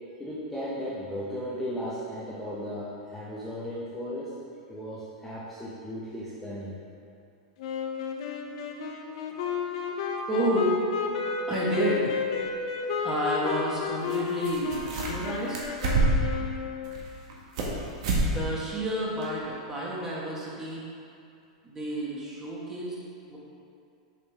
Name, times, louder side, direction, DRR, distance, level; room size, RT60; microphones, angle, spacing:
voice 1, 0.2-4.4 4.7-6.8, equal, 5° left, -10 dB, 0.9 m, -36 dB
Wind instrument woodwind instrument, 7.6-17.1, left 6 dB, 65° left, 0.8 m, -32 dB
voice 2, 10.3-10.8 11.4-12.1 13.0-15.6 18.3-20.8 21.6-23.0 23.3-23.4, right 1 dB, 15° right, -5 dB, 1.6 m, -30 dB
sound 1, 12.4-12.5 14.1-14.2 14.4-15.3 15.5-16.3 16.8-17.7 18.0-18.3 18.6-18.7 19.2-19.3, right 2 dB, 65° right, 1.6 m, -26 dB
7.3 x 6.1 x 3.6 m, 2.5 s
supercardioid pair, 145°, 3 cm